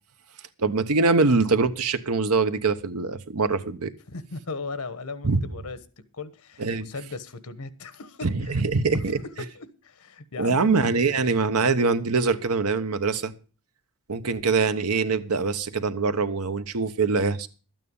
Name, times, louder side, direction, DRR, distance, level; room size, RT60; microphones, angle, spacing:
voice 1, 0.6-3.9 5.2-5.4 6.6-6.9 8.2-9.2 10.4-13.3 14.1-17.5, right 4 dB, 90° right, 1.0 m, -23 dB
voice 2, 4.1-5.8 6.1-8.6 8.9-10.7 11.0-11.1, left 3 dB, 85° left, 1.2 m, -38 dB
12.5 x 9.1 x 5.4 m
head